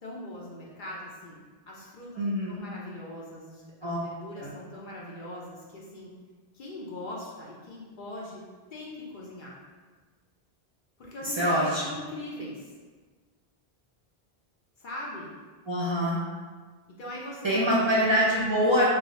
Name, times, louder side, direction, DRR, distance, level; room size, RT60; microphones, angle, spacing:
voice 1, 0.0-2.2 2.5-6.1 6.5-8.4 8.7-9.6 11.0-12.7 14.8-15.3 17.0-17.8, left 1 dB, 60° left, -4 dB, 0.7 m, -41 dB
voice 2, 2.2-2.6 3.8-4.0 4.4-4.5 11.4-11.8 15.7-16.2 17.4-18.8, equal, 30° right, -8 dB, 0.6 m, -24 dB
2.5 x 2.4 x 4.0 m, 1.4 s
omnidirectional pair, 1.1 m